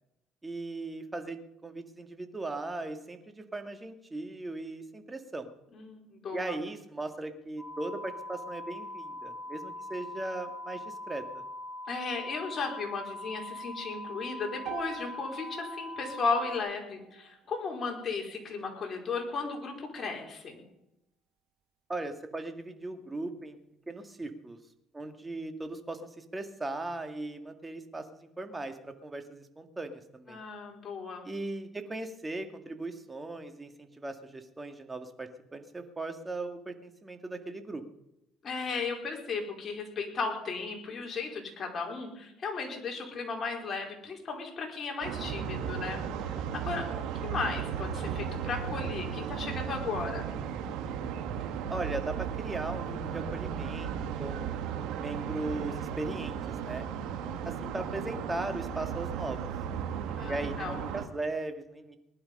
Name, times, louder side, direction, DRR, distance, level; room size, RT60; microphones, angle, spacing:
voice 1, 0.4-5.5 6.3-11.4 21.9-23.6 23.9-24.6 24.9-30.4 31.2-37.8 51.7-53.9 54.2-54.6 55.0-56.9 57.4-59.4 60.3-62.0, right 2 dB, 15° right, 6 dB, 2.1 m, -38 dB
voice 2, 5.7-6.5 11.9-20.6 30.3-31.2 38.4-46.9 47.2-50.3 60.0-60.8, left 4 dB, 40° left, 1 dB, 4.7 m, -35 dB
sound 1, 7.6-16.6, left 1 dB, 5° left, 3.1 m, -42 dB
sound 2, 14.7-18.8, right 14 dB, 65° right, 1.2 m, -47 dB
sound 3, 45.0-61.1, right 8 dB, 80° right, 1.8 m, -35 dB
19.5 x 11.5 x 5.5 m, 0.86 s
cardioid pair, 95°, 0 cm